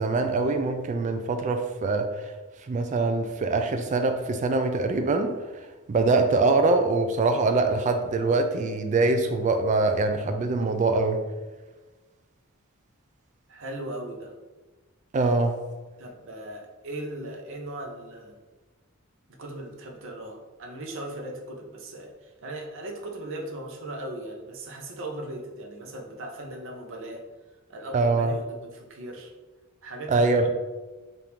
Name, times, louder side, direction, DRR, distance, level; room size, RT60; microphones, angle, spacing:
voice 1, 0.0-2.3 2.7-5.3 5.9-11.2 15.1-15.6 27.9-28.4 30.1-30.5, right 3 dB, 35° right, 6 dB, 0.3 m, -23 dB
voice 2, 13.5-14.3 16.0-18.3 19.4-27.2 27.7-29.3 29.8-30.2, right 1 dB, 65° right, 1 dB, 0.7 m, -38 dB
3.5 x 2.6 x 4.3 m, 1.2 s
head